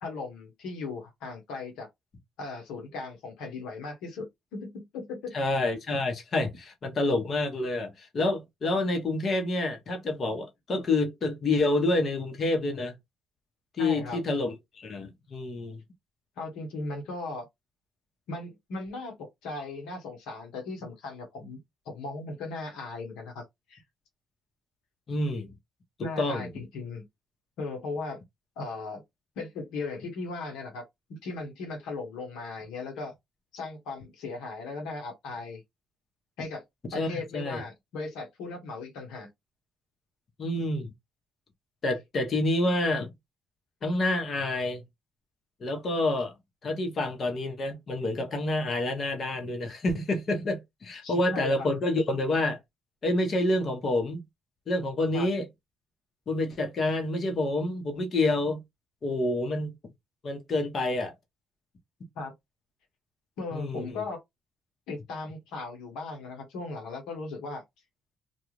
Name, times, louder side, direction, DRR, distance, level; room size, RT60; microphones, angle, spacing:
voice 1, 0.0-1.9 2.4-5.4 13.8-14.2 16.4-17.5 18.3-21.6 21.8-23.4 23.7-23.8 26.0-27.1 27.6-28.2 28.6-29.0 29.4-33.1 33.5-35.6 36.4-36.6 36.9-39.3 51.0-51.7 55.1-55.3 62.1-62.3 63.4-64.2 64.9-67.6, left 3 dB, 85° left, 1.1 m, -37 dB
voice 2, 5.3-12.9 13.8-15.8 25.1-25.5 26.2-26.5 36.9-37.6 40.4-40.9 41.8-43.1 43.8-44.8 45.6-46.3 46.6-52.6 53.0-54.2 54.7-55.5 56.3-58.6 59.0-59.7 60.2-61.1 63.5-64.1, left 2 dB, 50° left, 1.0 m, -28 dB
2.4 x 2.3 x 3.1 m
supercardioid pair, 70°, 0 cm